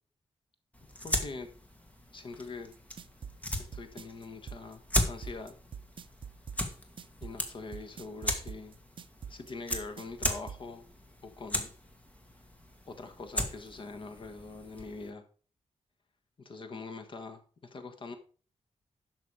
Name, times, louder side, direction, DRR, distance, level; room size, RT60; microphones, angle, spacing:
sound 1, 0.7-15.1, left 1 dB, 10° left, 1.7 m, -37 dB
voice 1, 1.0-1.5 2.1-2.7 3.5-4.8 5.1-5.5 7.2-8.8 9.3-10.9 11.2-11.7 12.9-15.2 16.4-18.2, left 3 dB, 45° left, 7 dB, 1.4 m, -43 dB
sound 2, 2.7-10.6, right 7 dB, 45° right, 0.6 m, -44 dB
11.5 x 6.3 x 4.9 m, 0.39 s
wide cardioid pair, 155°, 11 cm